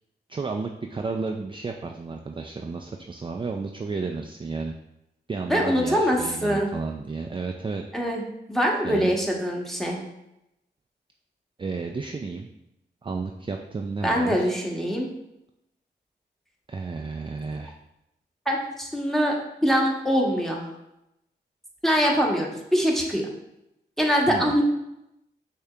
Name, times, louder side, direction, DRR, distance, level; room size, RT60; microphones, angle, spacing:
voice 1, 0.3-4.7 5.3-7.8 8.8-9.2 11.6-12.5 13.0-14.5 16.7-17.7 24.3-24.6, right 4 dB, 25° right, 3 dB, 0.4 m, -32 dB
voice 2, 5.5-6.7 7.9-8.2 8.5-10.0 14.0-15.1 18.5-19.3 19.6-20.6 21.8-23.3 24.0-24.6, equal, ahead, -1 dB, 1.1 m, -23 dB
6.4 x 2.8 x 2.4 m, 0.87 s
cardioid pair, 45°, 19 cm